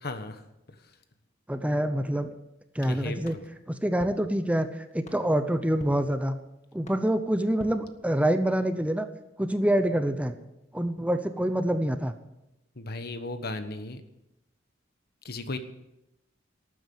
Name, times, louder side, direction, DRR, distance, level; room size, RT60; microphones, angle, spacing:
voice 1, 0.0-1.0 2.8-3.4 12.7-14.0 15.2-15.6, left 2 dB, 55° left, 9 dB, 1.3 m, -36 dB
voice 2, 1.5-2.3 2.7-3.3 3.7-6.3 6.7-9.1 9.4-10.3 10.7-12.1, right 1 dB, 5° right, 9 dB, 0.8 m, -26 dB
sound 1, 3.2-8.6, left 1 dB, 35° left, 1.7 m, -50 dB
13.0 x 9.2 x 9.3 m, 0.90 s
head